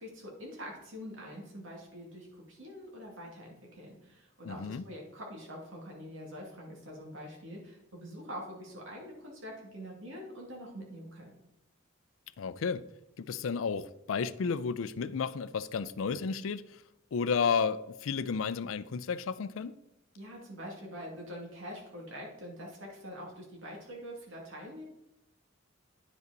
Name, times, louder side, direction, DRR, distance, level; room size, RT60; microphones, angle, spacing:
voice 1, 0.0-11.3 20.2-24.8, equal, 75° right, 2.4 m, -45 dB
voice 2, 4.4-4.8 12.4-12.8 13.2-16.8 17.1-19.7, left 5 dB, 80° left, 0.4 m, -32 dB
9.7 x 5.2 x 4.0 m
head